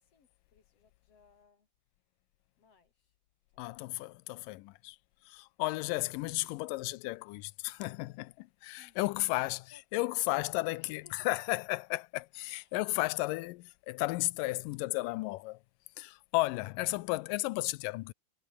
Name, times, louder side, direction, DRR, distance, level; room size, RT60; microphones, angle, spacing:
voice 1, 0.0-1.7 2.6-3.2 8.8-9.1 9.7-11.3 12.5-12.8, left 5 dB, 45° left, 4.0 m, -63 dB
voice 2, 3.6-5.0 5.3-15.6 16.0-18.1, left 20 dB, 85° left, 2.3 m, -34 dB
omnidirectional pair, 3.9 m